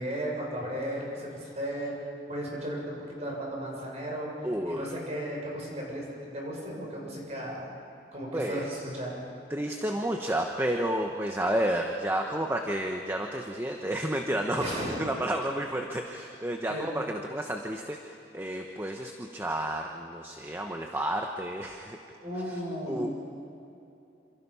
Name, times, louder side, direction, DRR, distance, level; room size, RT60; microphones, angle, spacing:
voice 1, 0.0-1.9 2.3-4.3 4.6-6.0 6.3-7.6 8.1-9.1 14.6-15.1 16.7-16.8 22.2-23.1, equal, 35° right, -2 dB, 6.9 m, -35 dB
voice 2, 4.4-5.0 8.3-8.7 9.5-22.0 22.9-23.1, right 1 dB, 15° right, 3 dB, 1.1 m, -31 dB
27.5 x 27.0 x 5.7 m, 2.9 s
head